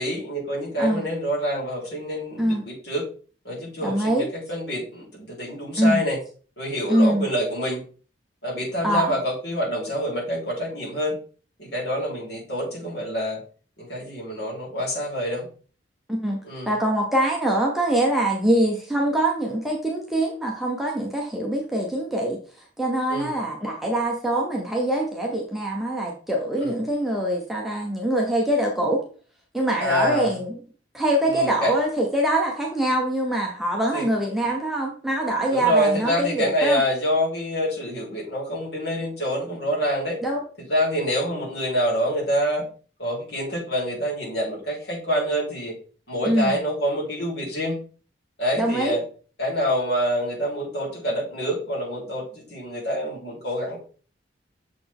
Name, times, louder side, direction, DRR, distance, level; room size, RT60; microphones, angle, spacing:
voice 1, 0.0-3.1 3.4-6.2 6.6-7.8 8.4-11.2 11.6-13.4 13.8-15.5 16.4-16.7 23.1-23.3 26.6-26.7 29.8-30.3 31.3-31.7 33.9-34.1 35.5-40.2 40.6-42.6 43.0-45.7 46.1-47.8 48.4-49.0 49.4-53.8, equal, 55° left, -5 dB, 3.5 m, -26 dB
voice 2, 3.8-4.3 5.7-6.0 6.9-7.3 8.8-9.2 16.1-16.4 16.7-22.4 22.8-29.0 29.5-30.6 30.9-36.8 40.2-40.4 46.2-46.6 48.6-49.0, right 1 dB, ahead, -1 dB, 0.9 m, -23 dB
6.8 x 4.2 x 3.6 m, 0.40 s
head